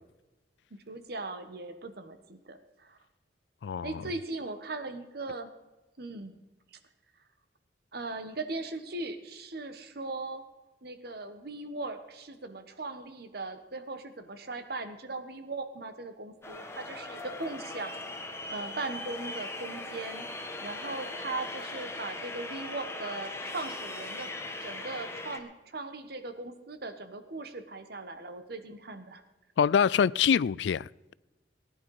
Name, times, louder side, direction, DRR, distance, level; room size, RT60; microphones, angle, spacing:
voice 1, 0.7-3.0 3.8-5.5 6.0-6.4 6.7-6.8 7.9-10.4 10.8-18.0 18.5-20.3 20.6-24.3 24.6-29.2, right 2 dB, 60° right, 1.3 m, -39 dB
voice 2, 3.6-4.0 29.6-30.9, left 7 dB, 75° left, 0.3 m, -25 dB
sound 1, 16.4-25.4, left 2 dB, 15° left, 1.3 m, -39 dB
19.0 x 10.5 x 4.8 m
head